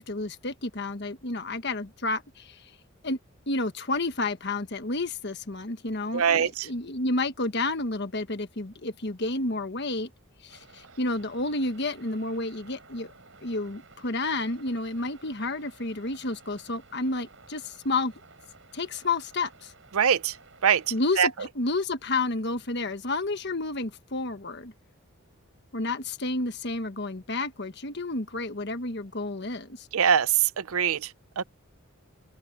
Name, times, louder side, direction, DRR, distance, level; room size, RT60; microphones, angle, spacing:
voice 1, 0.0-2.6 3.0-3.2 3.5-10.1 10.4-13.1 13.4-18.1 18.7-19.7 20.9-24.7 25.7-29.9, left 2 dB, 50° left, 1.4 m, -30 dB
voice 2, 6.1-6.7 19.9-20.3 20.6-20.8 21.2-21.3 29.9-30.3 30.6-31.0 31.4-31.5, right 7 dB, 85° right, 0.6 m, -22 dB
sound 1, 10.5-21.2, right 4 dB, 60° right, 7.5 m, -54 dB
open air
head